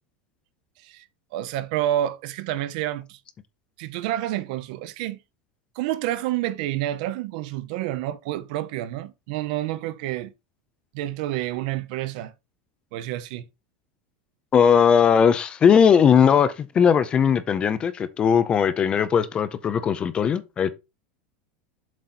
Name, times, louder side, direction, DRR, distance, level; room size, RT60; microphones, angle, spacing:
voice 1, 1.3-3.2 3.8-5.2 5.8-10.3 10.9-12.3 12.9-13.4, right 13 dB, 55° right, 0.6 m, -29 dB
voice 2, 14.5-20.7, left 7 dB, 20° left, 0.5 m, -19 dB
7.5 x 4.0 x 4.2 m
supercardioid pair, 170°, 5 cm